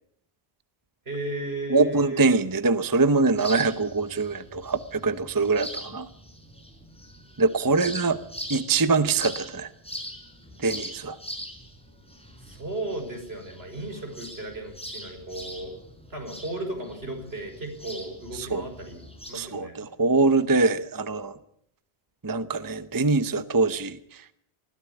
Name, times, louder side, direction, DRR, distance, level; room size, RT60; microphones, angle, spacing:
voice 1, 1.1-2.2 7.7-7.9 12.4-15.8 16.1-19.7, right 2 dB, 75° right, 4 dB, 5.8 m, -35 dB
voice 2, 1.7-6.1 7.4-8.2 8.5-9.7 10.6-11.2 18.5-18.6 19.3-21.3 22.2-24.0, right 3 dB, 20° right, 12 dB, 0.8 m, -23 dB
sound 1, 3.3-19.3, equal, 5° left, 4.9 m, -41 dB
21.0 x 15.5 x 9.8 m, 0.70 s
omnidirectional pair, 1.1 m